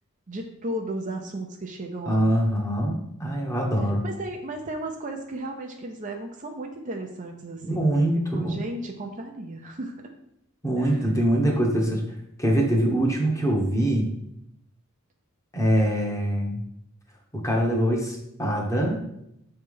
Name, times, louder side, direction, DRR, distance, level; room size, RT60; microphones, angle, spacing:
voice 1, 0.3-2.3 4.0-7.9 8.3-10.1 10.8-11.1, right 1 dB, 35° right, 2 dB, 0.7 m, -34 dB
voice 2, 2.1-4.0 7.6-8.6 10.6-12.0 12.4-14.1 15.5-16.6 17.3-19.0, right 1 dB, 15° left, -1 dB, 1.2 m, -23 dB
7.1 x 3.4 x 5.4 m, 0.77 s
head